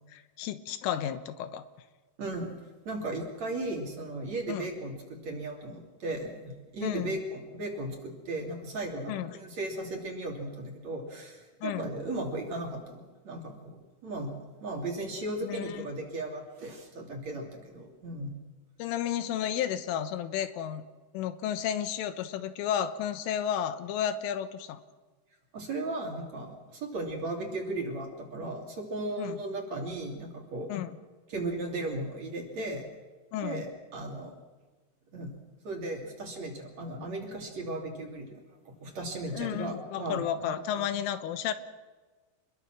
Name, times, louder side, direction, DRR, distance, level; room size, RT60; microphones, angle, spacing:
voice 1, 0.1-1.6 4.5-4.7 6.8-7.2 9.1-9.4 11.6-11.9 15.4-15.9 18.8-20.8 21.1-24.8 29.2-29.4 30.7-31.0 33.3-33.7 39.3-41.5, left 10 dB, 85° left, 11 dB, 3.6 m, -32 dB
voice 2, 2.2-2.5 2.9-13.8 14.0-14.3 14.6-18.3 25.5-30.7 31.3-32.8 33.4-34.3 35.1-35.4 35.6-40.5 40.8-40.9, right 2 dB, 40° right, 1 dB, 3.6 m, -36 dB
28.0 x 21.5 x 6.2 m, 1.3 s
omnidirectional pair, 5.6 m